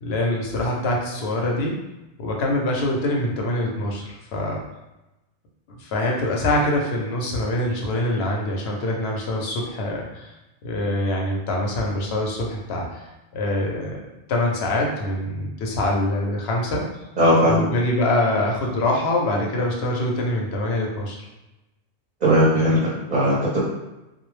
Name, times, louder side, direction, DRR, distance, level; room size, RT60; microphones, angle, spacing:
voice 1, 0.0-1.8 2.2-4.6 5.8-10.3 10.6-13.0 13.3-14.0 14.3-16.9 17.5-21.2, left 1 dB, 70° left, -1 dB, 0.8 m, -24 dB
voice 2, 17.2-17.7 22.2-23.6, equal, 45° right, -8 dB, 0.6 m, -18 dB
2.3 x 2.0 x 3.0 m, 0.97 s
omnidirectional pair, 1.2 m